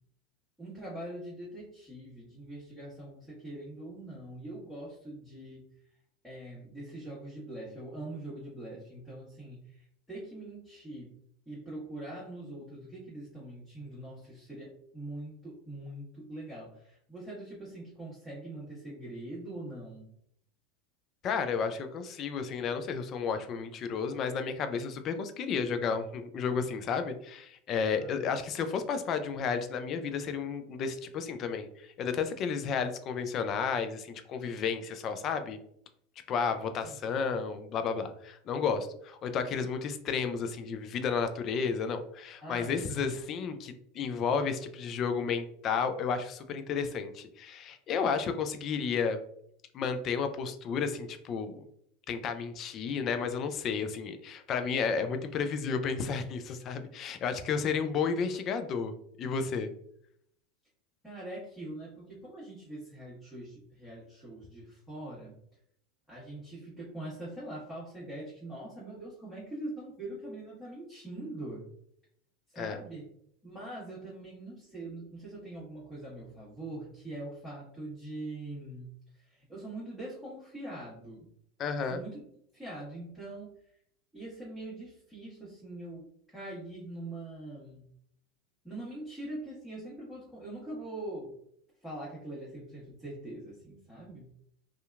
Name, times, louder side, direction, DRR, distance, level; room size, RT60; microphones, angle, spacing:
voice 1, 0.6-5.7 6.2-11.1 11.5-20.1 27.9-28.3 36.8-37.0 42.4-43.0 61.0-65.3 66.1-71.7 72.5-73.1 73.4-78.9 79.3-81.3 81.9-82.3 82.5-83.5 84.1-86.1 86.3-87.9 88.6-91.3 91.8-94.3, right 1 dB, ahead, -11 dB, 1.2 m, -43 dB
voice 2, 21.2-35.6 36.3-49.2 49.7-51.6 52.1-59.7 72.6-72.8 81.6-82.0, left 6 dB, 40° left, 8 dB, 0.3 m, -32 dB
2.7 x 2.4 x 2.3 m, 0.70 s
hypercardioid pair, 90°, 0 cm